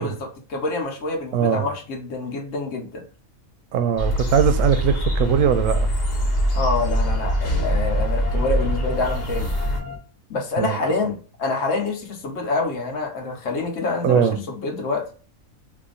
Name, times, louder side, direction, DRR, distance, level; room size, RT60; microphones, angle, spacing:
voice 1, 0.0-3.1 6.5-9.5 10.3-15.0, left 3 dB, 65° left, 1.2 m, -26 dB
voice 2, 1.3-1.7 3.7-5.9 10.6-10.8 14.0-14.4, right 8 dB, 70° right, 0.9 m, -20 dB
sound 1, 4.0-9.8, equal, 45° left, 1.2 m, -23 dB
sound 2, 5.8-10.0, left 4 dB, 10° left, 0.7 m, -38 dB
2.9 x 2.6 x 3.7 m
omnidirectional pair, 1.5 m